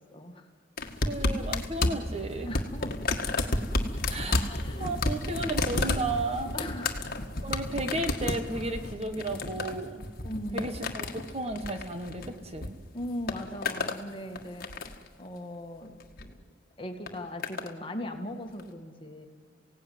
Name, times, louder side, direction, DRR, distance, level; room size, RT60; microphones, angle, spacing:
voice 1, 0.1-0.5 2.5-3.2 4.2-5.0 6.5-7.3 10.2-10.7 12.9-14.9 15.2-15.9 16.2-16.4 16.8-19.3, left 1 dB, 30° left, 4 dB, 2.0 m, -39 dB
sound 1, 0.8-12.7 13.0-14.0 14.4-15.1 16.0-16.3 17.1-17.7 18.6-18.7, left 2 dB, 55° left, 1.6 m, -31 dB
voice 2, 1.0-2.5 4.1-4.4 4.8-6.5 7.4-10.0 10.5-12.8, right 2 dB, 35° right, 7 dB, 1.4 m, -33 dB
28.5 x 17.0 x 9.4 m, 2.1 s
head